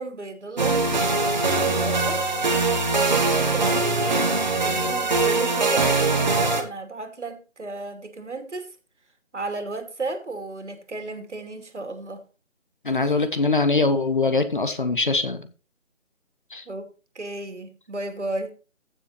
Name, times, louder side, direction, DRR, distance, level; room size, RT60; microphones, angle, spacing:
voice 1, 0.0-2.2 2.9-8.7 9.3-12.2 16.7-18.5, right 3 dB, 60° right, 2.8 m, -34 dB
sound 1, 0.6-6.6, right 3 dB, 35° right, 1.9 m, -22 dB
voice 2, 12.8-15.5 16.5-16.6, left 3 dB, 40° left, 1.4 m, -22 dB
15.0 x 7.1 x 2.8 m
figure-of-eight pair, 170°, 39 cm